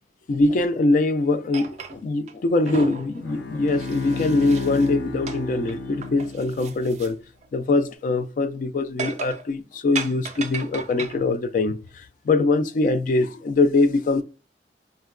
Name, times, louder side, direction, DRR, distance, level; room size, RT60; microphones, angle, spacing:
voice 1, 0.3-7.2 7.5-14.2, left 3 dB, 50° left, 0.3 m, -22 dB
sound 1, 1.5-2.3 2.6-4.9 5.3-5.4 5.7-7.1 7.4-7.5 9.0-9.5 10.0-11.2, right 4 dB, 40° right, 0.4 m, -35 dB
Bowed string instrument, 3.2-6.8, left 3 dB, 85° left, 0.7 m, -32 dB
3.8 x 2.1 x 2.3 m
head